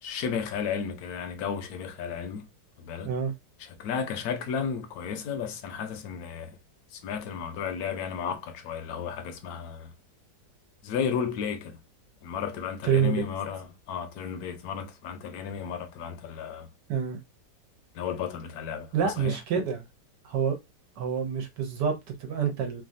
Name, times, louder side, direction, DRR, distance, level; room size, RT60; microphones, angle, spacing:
voice 1, 0.0-2.5 2.8-3.1 3.6-6.6 6.9-9.9 10.8-11.8 12.2-16.7 17.9-19.4, left 7 dB, 70° left, 1.0 m, -33 dB
voice 2, 18.9-19.8 20.2-20.6 21.0-22.8, right 7 dB, 80° right, 1.3 m, -27 dB
3.2 x 2.3 x 2.5 m
omnidirectional pair, 1.9 m